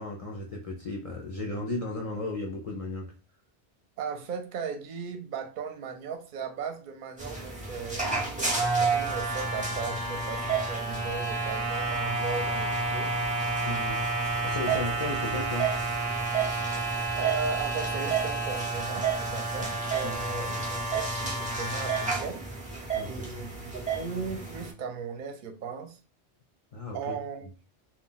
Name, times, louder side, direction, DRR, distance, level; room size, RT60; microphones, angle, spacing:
voice 1, 0.0-3.0 13.6-14.0 14.4-15.7 20.0-20.4 23.0-23.4 26.7-27.2, left 2 dB, 55° left, -1 dB, 0.4 m, -35 dB
voice 2, 4.0-13.1 17.2-22.4 23.0-26.0 26.9-27.5, right 5 dB, 55° right, 4 dB, 0.6 m, -37 dB
sound 1, 7.2-24.7, right 3 dB, 10° right, 0.5 m, -30 dB
2.3 x 2.2 x 3.7 m, 0.35 s
omnidirectional pair, 1.2 m